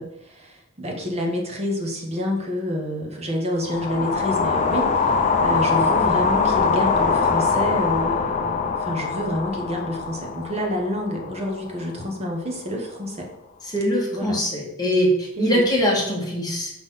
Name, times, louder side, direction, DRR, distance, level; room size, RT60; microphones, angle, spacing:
voice 1, 0.0-13.3 14.1-14.4 15.4-15.6, left 1 dB, 30° right, 0 dB, 1.0 m, -28 dB
sound 1, 3.6-11.8, left 5 dB, 35° left, 0.5 m, -23 dB
voice 2, 13.7-16.7, equal, 20° left, -3 dB, 1.6 m, -22 dB
4.9 x 3.9 x 5.5 m, 0.84 s
head